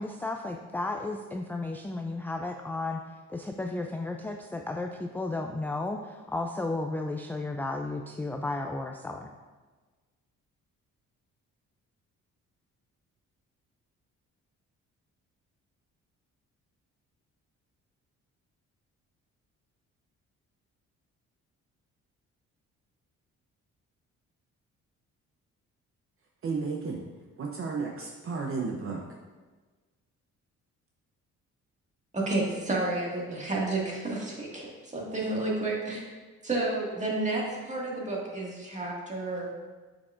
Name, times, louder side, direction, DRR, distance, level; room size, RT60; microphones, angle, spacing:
voice 1, 0.0-3.0 3.3-9.3, left 2 dB, 5° left, 3 dB, 0.3 m, -33 dB
voice 2, 26.4-27.0 27.4-29.0, right 4 dB, 45° right, 1 dB, 0.7 m, -33 dB
voice 3, 32.1-36.0 36.4-39.5, right 2 dB, 25° right, -3 dB, 1.9 m, -31 dB
7.8 x 6.1 x 2.5 m, 1.3 s
cardioid pair, 90°, 30 cm